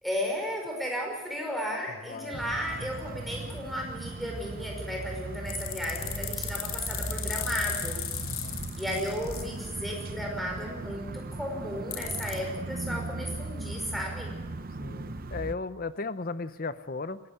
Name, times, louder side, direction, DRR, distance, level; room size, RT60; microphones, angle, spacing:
voice 1, 0.0-8.1 8.8-14.3, equal, ahead, 1 dB, 5.3 m, -34 dB
voice 2, 2.1-2.4 8.2-8.7 14.8-17.2, left 3 dB, 40° left, 14 dB, 0.7 m, -36 dB
sound 1, 2.3-15.5, right 2 dB, 40° right, 0.7 m, -38 dB
sound 2, 5.5-9.4 11.9-12.4, left 11 dB, 70° left, 2.8 m, -36 dB
19.5 x 16.0 x 9.6 m, 1.2 s
head